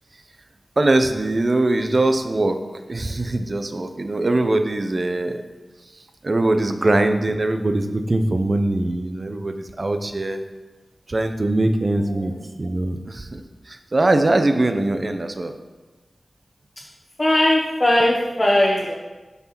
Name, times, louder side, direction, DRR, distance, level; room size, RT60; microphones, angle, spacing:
voice 1, 0.8-2.6 2.9-5.4 6.2-10.4 11.1-15.6, right 2 dB, 45° right, 7 dB, 0.6 m, -22 dB
voice 2, 17.2-18.9, left 1 dB, 35° left, -4 dB, 1.1 m, -18 dB
6.7 x 4.6 x 5.9 m, 1.2 s
wide cardioid pair, 70°, 0 cm